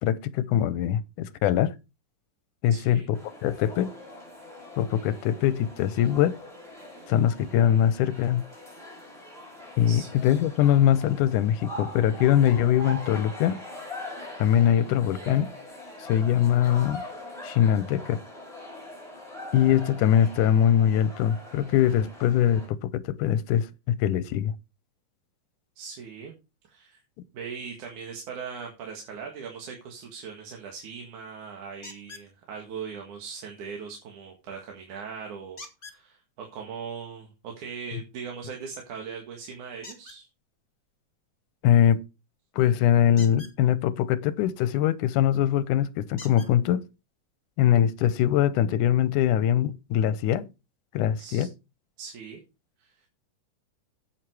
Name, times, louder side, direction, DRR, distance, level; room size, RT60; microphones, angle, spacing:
voice 1, 0.0-1.8 2.6-3.9 4.8-6.4 7.1-8.4 9.8-13.6 14.4-15.5 16.0-17.0 17.4-18.2 19.5-24.5 41.6-42.0 42.6-46.8 47.6-50.5 50.9-51.5, left 10 dB, 90° left, 2.2 m, -22 dB
voice 2, 2.7-3.1 9.9-10.1 25.8-26.3 26.7-27.0 27.3-35.6 35.9-40.3 51.2-51.5 52.0-52.4 52.8-52.9, right 6 dB, 75° right, 3.3 m, -40 dB
sound 1, 3.1-22.7, left 1 dB, ahead, 5.8 m, -42 dB
sound 2, 31.8-32.3 35.6-36.0 39.8-40.2 43.1-43.5 45.2-45.3 46.2-46.5 47.5-47.6 48.1-48.2, left 3 dB, 20° left, 2.0 m, -44 dB
9.4 x 8.7 x 4.7 m
omnidirectional pair, 3.6 m